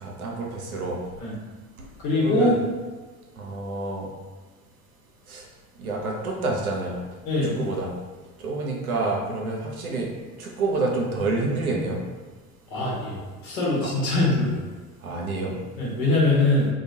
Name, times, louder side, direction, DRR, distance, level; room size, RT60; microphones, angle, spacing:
voice 1, 0.0-1.0 2.2-2.6 3.4-4.1 5.3-5.4 5.8-6.9 7.4-7.9 8.4-10.1 10.4-12.0 13.8-13.9 15.0-15.5, right 3 dB, 85° right, -1 dB, 0.5 m, -28 dB
voice 2, 2.0-2.6 7.3-7.6 12.7-14.5 15.8-16.7, left 2 dB, 70° left, -5 dB, 0.9 m, -22 dB
2.1 x 2.1 x 2.7 m, 1.3 s
figure-of-eight pair, 60°, 42 cm